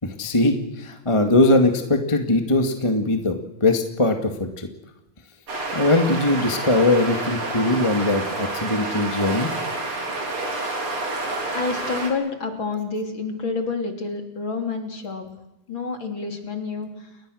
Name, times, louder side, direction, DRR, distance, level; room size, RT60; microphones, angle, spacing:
voice 1, 0.0-4.7 5.7-9.5, left 2 dB, 15° left, 5 dB, 1.2 m, -21 dB
sound 1, 5.5-12.1, right 2 dB, 40° right, 4.7 m, -29 dB
voice 2, 11.5-15.3 15.7-17.1, left 4 dB, 35° left, 4 dB, 3.4 m, -28 dB
30.0 x 22.0 x 6.5 m, 0.93 s
omnidirectional pair, 4.0 m